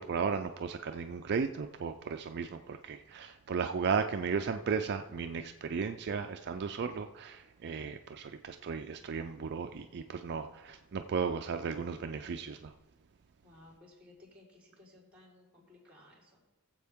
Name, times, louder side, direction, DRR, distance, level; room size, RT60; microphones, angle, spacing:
voice 1, 0.0-12.7, right 5 dB, 50° right, 7 dB, 0.4 m, -35 dB
voice 2, 13.4-16.4, left 2 dB, 5° right, -3 dB, 4.2 m, -58 dB
20.5 x 7.6 x 3.6 m, 1.2 s
head